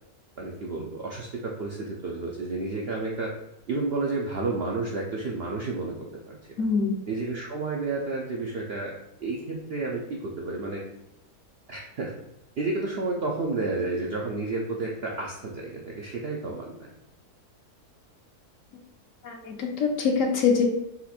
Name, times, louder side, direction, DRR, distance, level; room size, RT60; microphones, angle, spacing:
voice 1, 0.4-3.3 3.7-6.3 7.1-8.9 9.2-10.8 11.7-12.1 12.6-16.8, right 3 dB, 65° right, -1 dB, 0.6 m, -31 dB
voice 2, 6.6-7.0 19.2-20.6, left 5 dB, 65° left, 2 dB, 1.0 m, -24 dB
4.2 x 2.5 x 4.1 m, 0.85 s
omnidirectional pair, 1.6 m